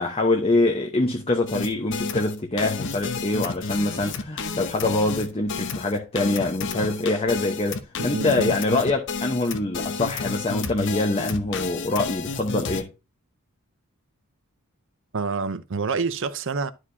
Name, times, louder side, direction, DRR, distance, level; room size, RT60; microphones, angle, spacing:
voice 1, 0.0-12.9, left 2 dB, 25° left, 0.9 m, -24 dB
sound 1, 1.5-12.8, left 4 dB, 55° left, 0.9 m, -31 dB
voice 2, 8.0-8.6 15.1-16.7, right 4 dB, 60° right, 0.7 m, -27 dB
11.5 x 4.9 x 2.7 m
head